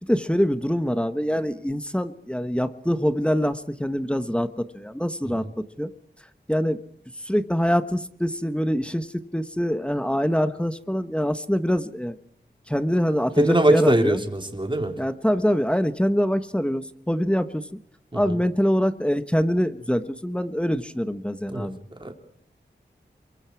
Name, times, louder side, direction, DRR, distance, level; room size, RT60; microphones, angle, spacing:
voice 1, 0.0-5.5 5.8-5.9 6.5-6.8 7.2-12.2 12.7-14.2 15.0-17.7 18.1-21.8, equal, 5° left, 11 dB, 1.2 m, -24 dB
voice 2, 13.4-15.0 18.1-18.4 21.5-21.7 22.0-22.1, right 1 dB, 25° right, 4 dB, 3.7 m, -22 dB
28.0 x 23.5 x 4.8 m, 0.65 s
cardioid pair, 50°, 19 cm